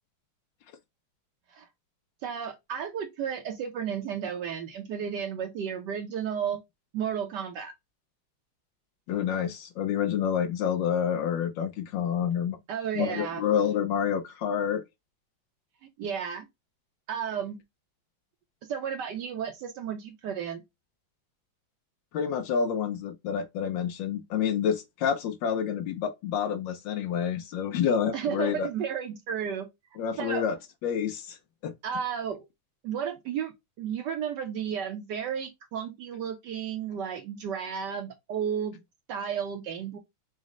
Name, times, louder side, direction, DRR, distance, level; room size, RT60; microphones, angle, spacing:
voice 1, 2.2-6.6 6.9-7.7 12.7-13.4 16.0-16.5 17.1-17.6 18.7-20.6 28.1-29.7 30.2-30.4 31.8-32.4 32.8-33.5 33.8-38.8 39.1-40.0, right 8 dB, 70° right, 1.0 m, -33 dB
voice 2, 9.1-12.6 12.9-14.8 22.1-28.7 30.0-30.6 30.8-31.4 31.6-31.7, left 8 dB, 75° left, 1.1 m, -28 dB
4.1 x 2.1 x 3.6 m
omnidirectional pair, 2.3 m